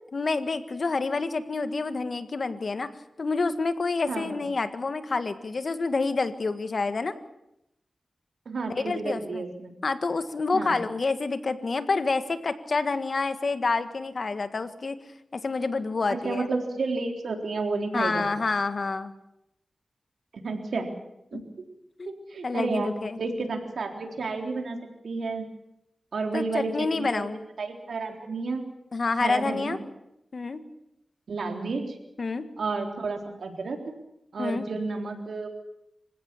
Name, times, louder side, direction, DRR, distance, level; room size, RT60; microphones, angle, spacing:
voice 1, 0.1-2.9 3.2-7.1 8.7-9.4 9.8-15.0 15.3-16.5 17.9-19.1 21.3-21.4 22.0-22.1 22.4-23.2 26.3-27.4 28.9-29.8 30.3-30.6 32.2-32.5 34.4-34.7, left 3 dB, 60° left, 10 dB, 1.7 m, -28 dB
voice 2, 4.1-4.4 8.5-9.7 10.5-10.8 16.1-18.3 20.3-20.9 21.3-21.4 22.1-22.9 23.2-24.8 25.0-25.5 26.1-27.3 27.6-28.6 29.2-29.8 31.3-32.0 32.6-33.8 34.3-35.5, right 3 dB, 90° right, 4 dB, 3.8 m, -31 dB
26.5 x 16.5 x 8.5 m, 0.83 s
wide cardioid pair, 75°, 0 cm